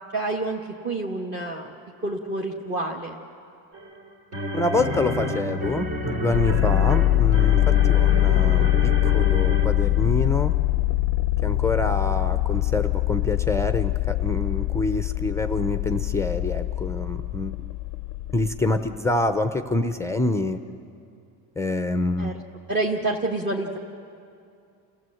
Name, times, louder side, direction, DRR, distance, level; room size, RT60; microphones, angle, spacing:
voice 1, 0.1-1.7 2.0-3.2 22.2-22.4 22.7-23.8, right 2 dB, 30° right, -1 dB, 1.3 m, -28 dB
sound 1, 3.7-10.2, equal, 60° right, 3.6 m, -30 dB
voice 2, 4.5-10.5 11.4-17.6 18.3-20.6 21.6-22.4, left 2 dB, 10° left, 8 dB, 0.5 m, -26 dB
sound 2, 6.3-19.0, left 16 dB, 60° left, 0.5 m, -23 dB
28.0 x 16.0 x 7.7 m, 2.5 s
cardioid pair, 150°, 37 cm